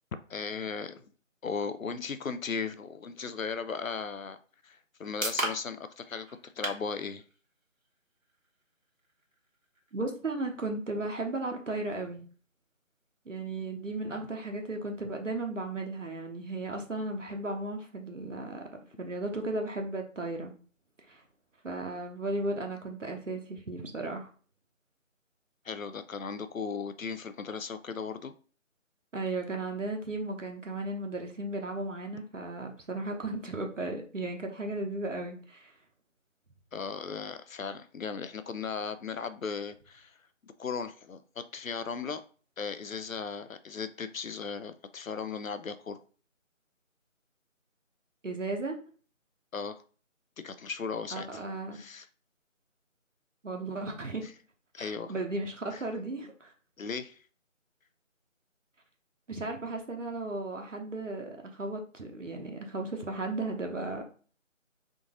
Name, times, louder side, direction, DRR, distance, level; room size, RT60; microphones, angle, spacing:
voice 1, 0.3-1.1 1.4-4.4 4.6-6.3 6.6-7.2 25.6-28.3 36.7-40.1 40.4-41.2 41.5-42.2 42.6-46.0 49.5-49.8 50.4-51.4 51.7-52.1 54.7-55.1 55.7-55.8 56.8-57.2, left 5 dB, 80° left, 11 dB, 0.6 m, -37 dB
sound 1, 4.5-18.4, right 2 dB, 90° right, 1.3 m, -44 dB
voice 2, 9.9-12.3 13.3-18.7 19.0-20.5 21.1-21.2 21.6-24.3 29.1-35.7 48.2-48.8 51.1-51.8 53.4-54.3 54.8-56.5 59.3-64.0, right 2 dB, 65° right, 3 dB, 0.9 m, -35 dB
3.8 x 2.6 x 3.7 m, 0.40 s
figure-of-eight pair, 170°, 40 cm